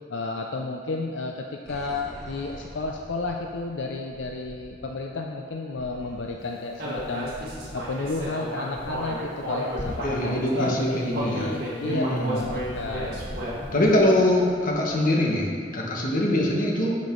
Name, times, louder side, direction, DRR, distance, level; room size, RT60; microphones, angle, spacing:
voice 1, 0.0-7.3 7.7-13.1, left 3 dB, 80° left, 1 dB, 0.5 m, -32 dB
sound 1, 1.6-10.0 10.4-10.6 10.9-15.1, equal, 5° left, 1.1 m, -45 dB
Human voice, 6.8-10.7 11.1-13.8, equal, 60° right, 2.1 m, -32 dB
voice 2, 10.0-11.5 11.8-12.5 13.7-16.9, left 1 dB, 50° left, -2 dB, 1.4 m, -23 dB
11.5 x 5.4 x 3.8 m, 2.3 s
head